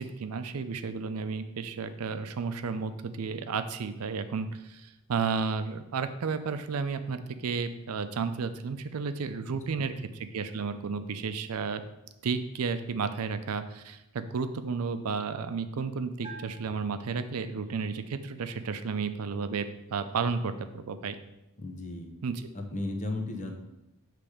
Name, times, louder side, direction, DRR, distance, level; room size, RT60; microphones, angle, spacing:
voice 1, 0.0-11.8 12.2-19.7 19.9-21.2 22.2-22.4, right 5 dB, 85° right, 10 dB, 0.5 m, -32 dB
Bell, 16.2-17.9, right 2 dB, 25° right, 0.8 m, -49 dB
voice 2, 21.6-22.1 22.5-23.6, left 2 dB, 35° left, 3 dB, 0.8 m, -35 dB
7.0 x 3.3 x 4.9 m, 0.90 s
head